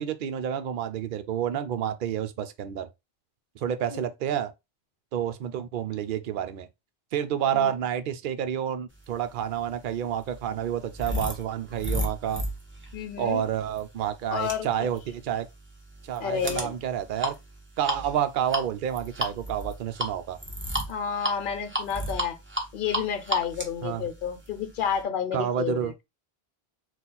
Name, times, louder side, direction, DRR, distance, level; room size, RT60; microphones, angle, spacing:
voice 1, 0.0-2.9 3.6-4.5 5.1-6.7 7.1-12.4 13.2-15.5 16.0-17.3 17.8-20.4 23.8-24.0 25.3-25.9, right 9 dB, 60° right, 0.7 m, -29 dB
sound 1, 9.4-25.0, equal, 10° right, 1.0 m, -34 dB
voice 2, 12.9-13.5 14.3-14.9 16.2-16.8 20.9-22.4 22.7-25.9, left 7 dB, 60° left, 0.9 m, -30 dB
4.3 x 2.4 x 3.8 m
omnidirectional pair, 1.1 m